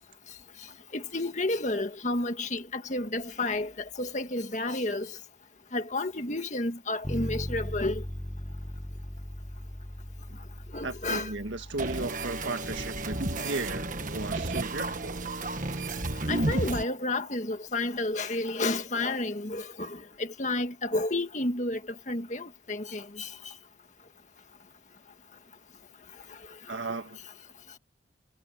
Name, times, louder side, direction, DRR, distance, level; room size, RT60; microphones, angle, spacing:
voice 1, 0.9-3.7 4.0-5.1 5.7-8.0 10.7-11.3 13.4-13.5 16.3-21.8 22.1-23.5, left 2 dB, 40° left, 1.8 m, -31 dB
Bass guitar, 7.0-16.8, equal, 5° left, 0.7 m, -40 dB
voice 2, 10.8-15.2 26.7-27.2, right 2 dB, 90° right, 1.8 m, -35 dB
sound 1, 11.8-16.8, right 2 dB, 45° right, 1.5 m, -32 dB
head